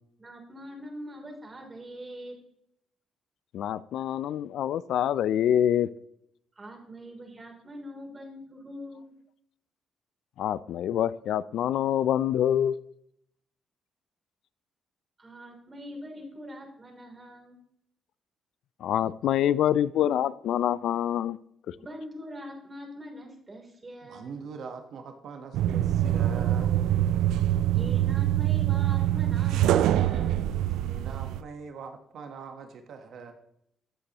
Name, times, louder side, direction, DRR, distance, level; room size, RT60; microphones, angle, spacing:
voice 1, 0.2-2.4 6.6-9.0 15.2-17.6 21.8-24.3 27.7-30.4, equal, 25° right, 3.2 m, -43 dB
voice 2, 3.5-5.9 10.4-12.7 18.8-21.4, left 10 dB, 75° left, 0.4 m, -26 dB
voice 3, 24.0-26.7 30.7-33.3, right 5 dB, 70° right, 1.2 m, -42 dB
sound 1, 25.5-31.4, right 12 dB, 90° right, 0.4 m, -24 dB
15.0 x 8.3 x 3.0 m
cardioid pair, 90°, 0 cm